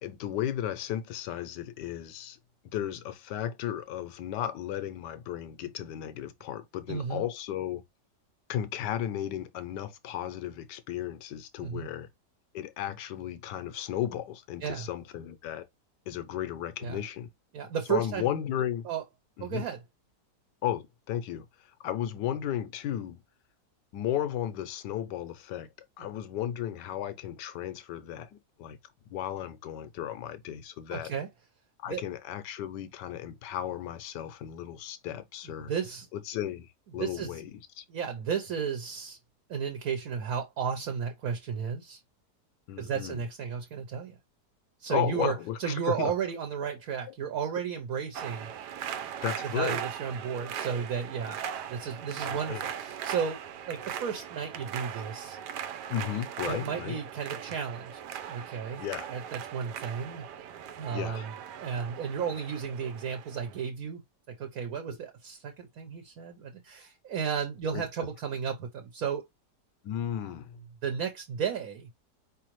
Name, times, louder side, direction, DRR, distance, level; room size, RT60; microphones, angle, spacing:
voice 1, 0.0-2.4 2.7-7.8 8.5-12.1 12.5-15.7 16.1-17.3 17.9-18.9 19.4-19.7 20.6-21.5 21.8-23.2 23.9-25.7 26.0-28.8 29.1-31.1 31.8-35.7 36.1-37.5 37.8-37.9 42.7-43.2 44.9-46.1 49.2-49.8 52.2-52.6 55.9-57.0 58.8-59.1 60.9-61.3 67.7-67.8 69.8-70.6, left 11 dB, 85° left, 1.3 m, -34 dB
voice 2, 6.9-7.3 11.6-11.9 14.6-14.9 16.8-17.0 17.5-18.3 18.8-19.0 19.4-19.8 26.0-26.1 30.9-31.3 31.9-32.0 35.7-36.1 37.0-37.3 37.9-39.2 39.5-42.0 42.8-44.2 44.8-48.5 49.4-51.4 51.7-53.4 53.7-55.4 56.4-58.8 59.1-60.2 60.7-64.0 64.4-69.3 70.8-71.9, right 7 dB, 60° right, 1.2 m, -33 dB
sound 1, 48.1-63.6, right 9 dB, 80° right, 1.2 m, -39 dB
4.9 x 3.2 x 3.0 m
omnidirectional pair, 1.8 m